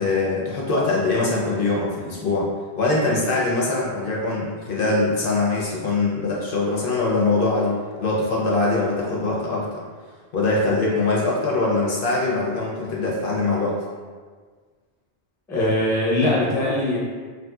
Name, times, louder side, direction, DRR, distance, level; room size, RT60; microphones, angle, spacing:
voice 1, 0.0-2.5 2.8-9.7 10.3-13.8, left 3 dB, 65° left, -3 dB, 0.7 m, -22 dB
voice 2, 15.5-17.0, left 1 dB, 5° left, -7 dB, 0.3 m, -21 dB
3.0 x 2.6 x 2.2 m, 1.5 s
omnidirectional pair, 1.1 m